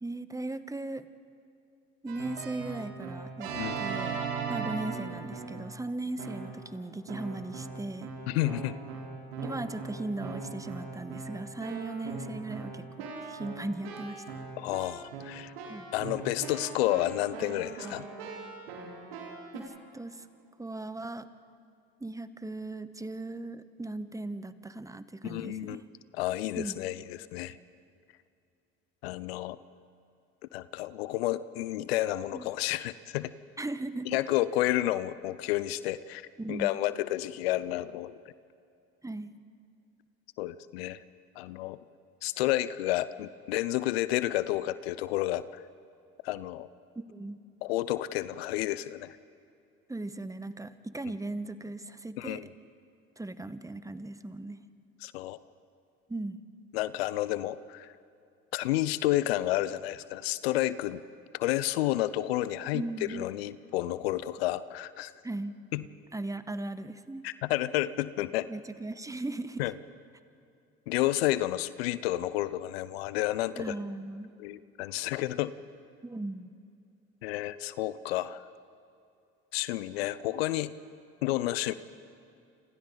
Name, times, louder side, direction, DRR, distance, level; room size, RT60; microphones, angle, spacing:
voice 1, 0.0-1.1 2.0-3.5 3.8-4.2 4.5-8.1 9.4-14.4 15.7-15.8 19.5-20.3 20.6-21.3 22.0-25.8 26.6-26.8 32.3-32.5 33.6-34.2 36.4-36.7 39.0-39.3 46.9-47.4 49.9-52.5 53.2-54.6 56.1-56.4 62.7-63.3 65.2-65.6 66.1-67.2 68.5-69.7 73.6-74.3 76.0-76.5, right 2 dB, 10° right, 12 dB, 1.1 m, -38 dB
Keyboard (musical), 2.1-5.7 6.2-6.7 7.1-19.6, right 5 dB, 85° right, 4.1 m, -39 dB
voice 2, 8.3-8.7 14.6-15.5 15.9-18.0 25.2-25.8 26.1-27.6 29.0-29.6 30.5-33.3 34.1-38.2 40.4-41.0 41.4-41.8 42.2-45.6 46.2-46.7 47.6-49.2 52.2-52.5 55.0-55.4 56.7-57.9 58.5-61.0 61.3-65.1 65.7-65.9 67.2-68.5 69.6-69.7 70.9-73.7 74.4-75.5 77.2-78.5 79.5-80.7 81.2-81.7, left 15 dB, 85° left, 16 dB, 0.7 m, -30 dB
29.0 x 27.0 x 4.0 m, 2.5 s
hypercardioid pair, 65°, 30 cm